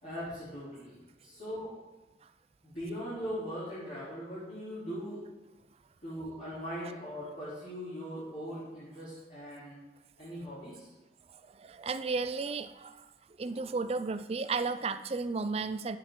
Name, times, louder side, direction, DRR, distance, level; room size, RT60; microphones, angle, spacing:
voice 1, 0.0-1.7 2.6-5.2 6.0-9.8 10.2-10.9, equal, 45° left, -12 dB, 3.2 m, -40 dB
voice 2, 11.3-13.1 13.4-16.0, right 4 dB, 35° right, 12 dB, 0.4 m, -34 dB
10.0 x 8.5 x 3.8 m, 1.1 s
head